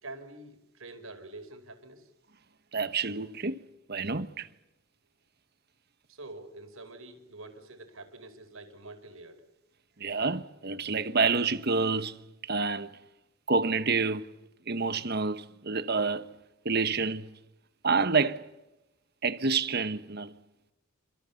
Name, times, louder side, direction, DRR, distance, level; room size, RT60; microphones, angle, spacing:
voice 1, 0.0-2.1 6.1-9.4, right 2 dB, 80° right, 4.9 m, -46 dB
voice 2, 2.7-3.6 3.9-4.5 10.0-13.0 13.5-14.3 14.7-16.3 16.6-17.4 17.8-18.5 19.2-20.4, right 4 dB, 50° right, 1.3 m, -28 dB
27.0 x 26.0 x 7.2 m
head